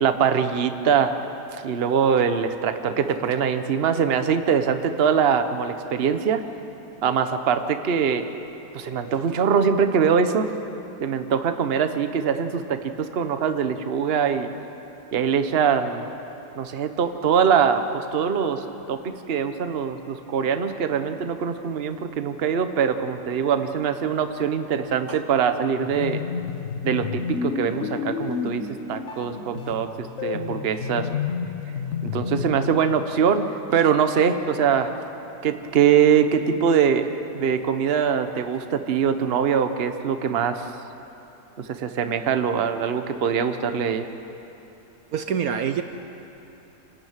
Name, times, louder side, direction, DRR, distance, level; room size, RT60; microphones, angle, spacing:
voice 1, 0.0-1.1 1.6-6.4 7.0-8.2 8.7-10.5 11.0-14.5 15.1-16.0 16.6-26.2 26.8-31.1 32.0-34.9 35.4-37.1 37.3-40.7 41.6-44.1, right 7 dB, 45° right, 8 dB, 1.0 m, -23 dB
sound 1, 25.8-32.7, left 6 dB, 50° left, 1.5 m, -30 dB
voice 2, 45.1-45.8, right 7 dB, 65° right, 8 dB, 1.2 m, -25 dB
26.5 x 12.5 x 9.0 m, 3.0 s
omnidirectional pair, 1.8 m